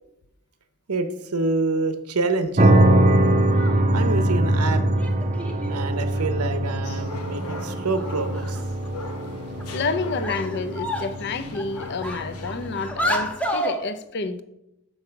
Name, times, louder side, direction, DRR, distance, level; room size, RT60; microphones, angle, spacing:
voice 1, 0.9-2.8 3.9-4.8 5.7-8.6, right 3 dB, 85° right, 0.8 m, -27 dB
sound 1, 2.6-13.3, right 1 dB, 30° right, 0.6 m, -23 dB
sound 2, 3.4-3.9 5.0-5.8 7.0-7.1 7.5-7.6 8.0-8.1 8.3-9.0 9.6-9.8 10.2-11.2 11.5-13.8, equal, 5° left, 0.8 m, -30 dB
sound 3, 6.8-12.9, left 3 dB, 85° left, 1.0 m, -41 dB
voice 2, 9.7-14.4, left 4 dB, 50° left, 0.5 m, -29 dB
7.0 x 5.4 x 5.7 m
head